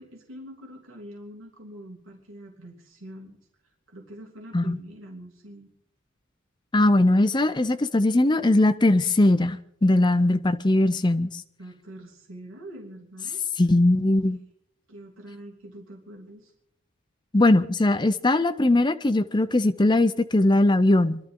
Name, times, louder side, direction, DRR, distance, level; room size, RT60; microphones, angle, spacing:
voice 1, 0.0-3.4 3.9-5.7 11.6-13.4 14.9-16.5, right 1 dB, 65° right, 3.0 m, -44 dB
voice 2, 6.7-11.4 13.6-14.4 17.3-21.2, left 2 dB, 20° left, 0.5 m, -20 dB
27.0 x 12.0 x 3.8 m
head